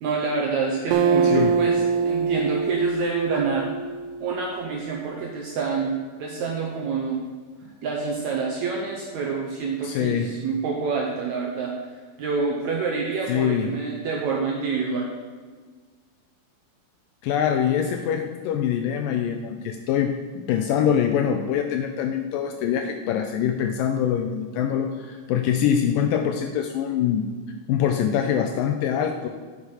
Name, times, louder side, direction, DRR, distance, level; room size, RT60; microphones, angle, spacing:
voice 1, 0.0-3.7 4.2-7.2 7.8-15.1, right 4 dB, 75° right, -1 dB, 1.7 m, -27 dB
Acoustic guitar, 0.9-4.5, right 5 dB, 90° right, 2.5 m, -23 dB
voice 2, 1.2-1.5 9.8-10.3 13.3-13.7 17.2-27.2 27.7-29.3, left 8 dB, 80° left, 5 dB, 2.1 m, -24 dB
8.0 x 6.5 x 5.6 m, 1.5 s
omnidirectional pair, 4.3 m